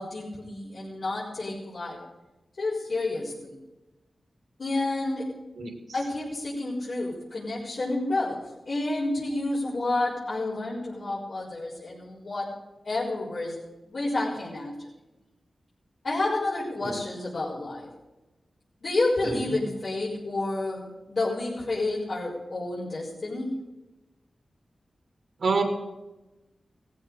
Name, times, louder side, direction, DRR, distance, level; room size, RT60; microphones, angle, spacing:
voice 1, 0.0-2.0 2.6-3.6 4.6-5.3 5.9-12.5 12.8-13.6 13.9-14.8 16.0-17.9 18.8-23.5, left 2 dB, 65° left, -8 dB, 5.1 m, -30 dB
voice 2, 19.2-19.6 25.4-25.6, right 4 dB, 75° right, 4 dB, 2.7 m, -27 dB
18.0 x 14.5 x 5.0 m, 1.1 s
wide cardioid pair, 85°, 0 cm